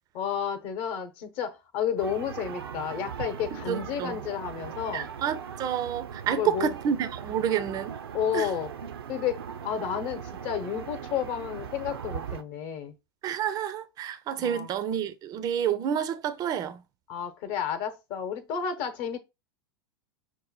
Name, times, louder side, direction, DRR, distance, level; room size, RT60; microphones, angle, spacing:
voice 1, 0.1-5.1 6.3-6.7 8.1-8.7 9.1-12.9 14.4-14.7 17.1-19.2, left 8 dB, 45° left, 0.9 m, -31 dB
sound 1, 2.0-12.4, right 8 dB, 70° right, 0.6 m, -39 dB
voice 2, 3.7-4.2 4.9-8.0 8.3-8.5 13.2-16.8, right 9 dB, 30° right, 0.5 m, -29 dB
6.0 x 2.1 x 4.1 m
figure-of-eight pair, 90°, 13 cm